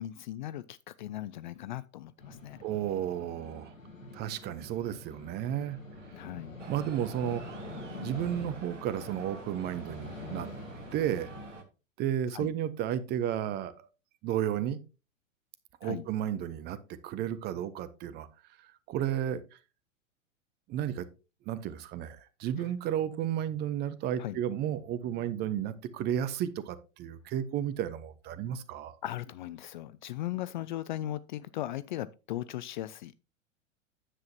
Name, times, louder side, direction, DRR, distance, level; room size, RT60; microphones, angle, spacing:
voice 1, 0.0-2.6 6.1-6.6 12.3-12.5 15.8-16.1 22.6-22.7 24.2-24.4 29.0-33.1, left 13 dB, 40° left, 0.4 m, -38 dB
sound 1, 2.2-11.6, left 1 dB, 85° left, 2.1 m, -45 dB
voice 2, 2.6-3.7 4.1-5.8 6.7-7.4 8.0-10.5 10.9-11.3 12.0-13.9 14.2-14.8 15.8-16.8 17.0-18.3 18.6-19.4 20.7-21.1 21.5-28.9, right 10 dB, 25° right, 0.7 m, -33 dB
sound 2, 6.6-11.6, right 5 dB, 65° right, 1.6 m, -50 dB
9.8 x 7.9 x 2.8 m
figure-of-eight pair, 95°, 39 cm